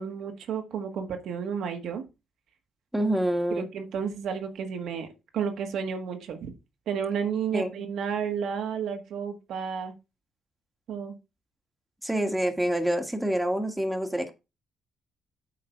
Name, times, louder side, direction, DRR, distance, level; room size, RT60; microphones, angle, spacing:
voice 1, 0.0-2.0 3.5-5.1 5.3-6.5 6.9-9.9 10.9-11.2, right 7 dB, 75° right, 1.5 m, -31 dB
voice 2, 2.9-3.6 7.5-7.7 12.0-14.3, right 1 dB, 5° right, 1.6 m, -27 dB
8.5 x 3.9 x 5.8 m
cardioid pair, 90°, 0 cm